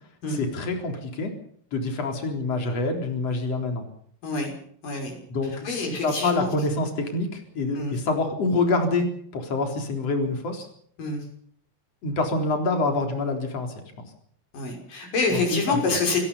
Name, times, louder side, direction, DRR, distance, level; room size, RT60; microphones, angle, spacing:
voice 1, 0.3-1.3 1.7-3.9 5.3-9.1 9.3-10.7 12.0-13.7 15.3-16.0, left 3 dB, 50° left, 4 dB, 4.9 m, -26 dB
voice 2, 4.8-5.1 5.6-6.5 7.8-8.0 11.0-11.2 14.5-16.3, left 3 dB, 80° left, 3 dB, 7.7 m, -26 dB
28.5 x 17.5 x 5.6 m, 0.62 s
omnidirectional pair, 3.7 m